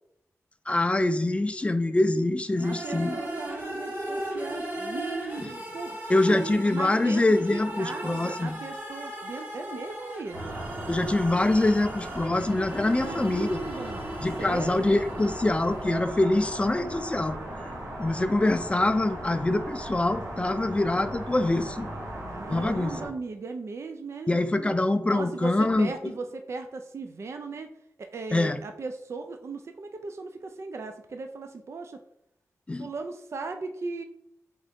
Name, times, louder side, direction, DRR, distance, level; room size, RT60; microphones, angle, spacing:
voice 1, 0.7-3.2 5.4-5.5 6.1-8.5 10.9-13.6 14.2-17.4 18.0-21.9 22.5-23.0 24.3-26.1 28.3-28.6 32.7-32.9, left 2 dB, 20° left, 10 dB, 0.3 m, -25 dB
sound 1, 2.5-16.4, right 1 dB, 30° right, 1.1 m, -38 dB
voice 2, 2.6-10.6 12.8-14.1 14.4-15.1 22.3-24.3 25.0-27.7 28.0-32.0 32.8-34.0, right 4 dB, 50° right, 6 dB, 0.4 m, -37 dB
sound 2, 10.3-23.1, right 1 dB, 70° right, 1.4 m, -37 dB
3.8 x 3.6 x 3.5 m, 0.78 s
wide cardioid pair, 80°, 6 cm